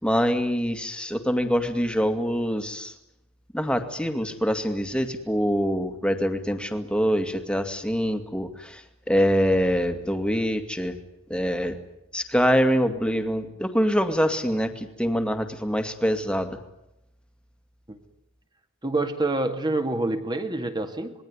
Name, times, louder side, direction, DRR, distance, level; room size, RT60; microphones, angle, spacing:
voice 1, 0.0-2.9 3.5-11.0 11.3-11.7 12.1-16.5, equal, 5° left, 7 dB, 2.3 m, -24 dB
voice 2, 18.8-21.1, right 2 dB, 20° right, 7 dB, 2.3 m, -27 dB
27.0 x 21.0 x 9.8 m, 0.87 s
head